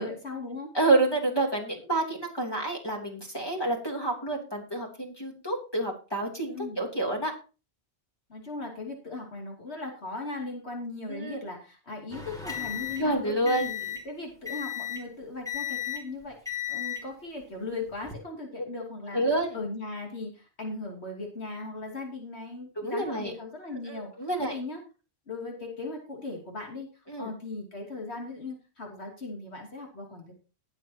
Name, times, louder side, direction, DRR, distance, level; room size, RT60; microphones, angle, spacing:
voice 1, 0.0-0.7 6.5-6.8 8.3-13.7 14.0-16.4 16.7-19.2 19.5-24.1 24.4-24.8 25.3-26.9 27.2-30.3, left 3 dB, 80° left, 0 dB, 3.0 m, -38 dB
voice 2, 0.7-7.3 11.1-11.4 13.0-13.7 18.6-18.7 19.1-19.6 22.8-23.3 23.9-24.6 27.1-27.3, right 2 dB, 20° left, 1 dB, 3.2 m, -28 dB
sound 1, 12.1-14.1 14.5-15.1 15.5-16.1 16.5-17.1 17.9-18.2, left 10 dB, 5° left, 2.5 m, -35 dB
19.5 x 7.6 x 2.9 m, 0.33 s
omnidirectional pair, 1.1 m